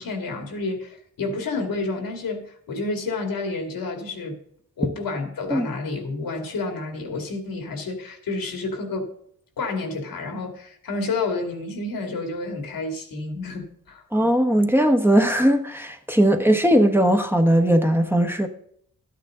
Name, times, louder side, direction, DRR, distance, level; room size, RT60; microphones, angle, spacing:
voice 1, 0.0-4.4 4.8-9.1 9.6-14.0 16.2-16.4, left 3 dB, 85° left, 2.4 m, -30 dB
voice 2, 14.1-18.5, right 1 dB, 5° right, 1.1 m, -19 dB
12.5 x 9.0 x 3.8 m
cardioid pair, 85°, 34 cm